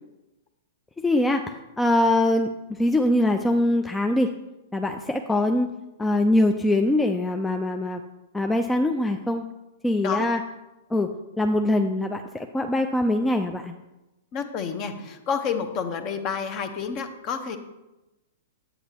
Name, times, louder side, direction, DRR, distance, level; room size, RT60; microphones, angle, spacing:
voice 1, 1.0-1.4 1.8-2.5 2.8-4.3 4.7-5.7 6.0-8.0 8.3-9.4 9.8-10.4 10.9-11.1 11.4-13.7, left 1 dB, 10° left, 4 dB, 0.4 m, -22 dB
voice 2, 14.3-17.6, left 6 dB, 35° left, 7 dB, 0.9 m, -29 dB
8.4 x 8.0 x 2.9 m, 1.0 s
figure-of-eight pair, 105°, 0 cm